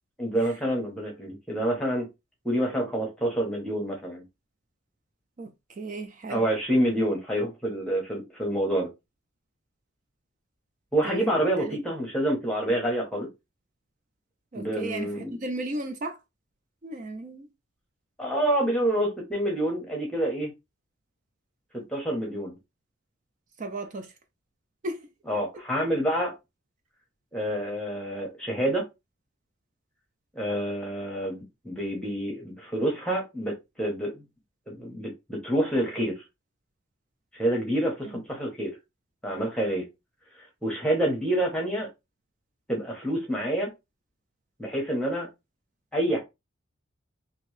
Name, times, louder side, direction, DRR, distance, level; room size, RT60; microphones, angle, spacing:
voice 1, 0.2-2.1 2.4-4.2 6.3-8.9 10.9-13.3 14.5-15.4 18.2-20.5 21.9-22.6 25.3-26.3 27.3-28.8 30.4-34.2 34.7-36.2 37.3-38.7 39.2-39.8 40.4-41.9 42.7-43.7 44.6-45.3 45.9-46.2, right 1 dB, 5° left, 0.8 m, -27 dB
voice 2, 5.4-6.4 11.0-11.3 11.6-11.8 14.5-16.2 16.8-17.5 23.6-24.1 24.8-25.1 38.0-38.2, right 2 dB, 35° right, 0.4 m, -35 dB
2.9 x 2.6 x 3.1 m
head